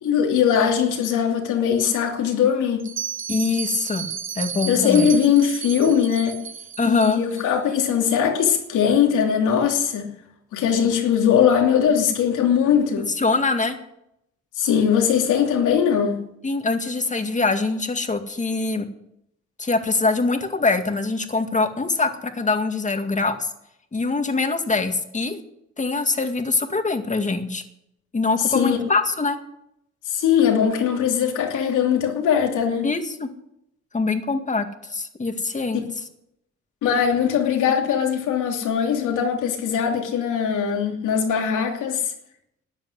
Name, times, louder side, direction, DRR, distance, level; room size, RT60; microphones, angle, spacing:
voice 1, 0.0-2.9 4.7-6.4 6.8-10.1 10.5-13.1 14.6-16.2 28.4-28.8 30.1-32.9 36.8-42.1, left 8 dB, 80° left, 3 dB, 2.9 m, -20 dB
Bell, 2.8-7.4, right 7 dB, 40° right, 1.0 m, -33 dB
voice 2, 3.3-4.1 4.4-5.1 6.8-7.2 13.2-13.8 16.4-18.9 19.6-23.5 23.9-25.4 25.8-27.6 28.1-29.4 32.8-33.3 33.9-35.8, left 3 dB, 25° left, 7 dB, 2.1 m, -23 dB
13.5 x 9.1 x 9.7 m, 0.79 s
cardioid pair, 90°, 30 cm